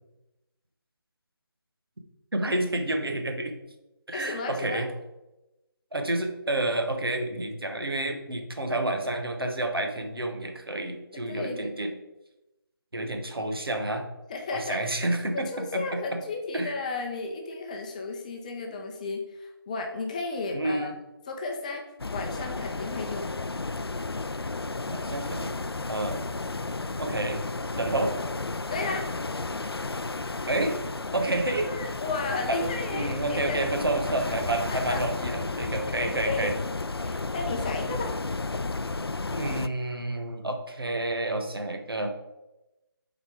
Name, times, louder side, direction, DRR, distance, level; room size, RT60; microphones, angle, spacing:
voice 1, 2.3-3.5 4.1-4.9 5.9-11.9 12.9-14.0 14.5-16.2 16.5-16.8 20.5-20.9 24.9-25.5 25.9-26.3 27.0-27.4 27.8-28.1 30.5-30.8 31.1-31.7 32.5-36.5 39.3-42.1, right 2 dB, 70° right, 4 dB, 1.3 m, -29 dB
voice 2, 4.1-4.9 11.1-11.7 14.3-14.8 15.3-20.9 21.3-21.8 22.1-23.3 28.7-29.1 31.5-33.6 34.7-35.0 36.0-36.5 37.0-38.1, left 3 dB, 20° left, 2 dB, 0.6 m, -34 dB
sound 1, 22.0-39.7, left 3 dB, 90° left, 0.4 m, -33 dB
7.0 x 4.1 x 4.9 m, 0.98 s
figure-of-eight pair, 155°, 13 cm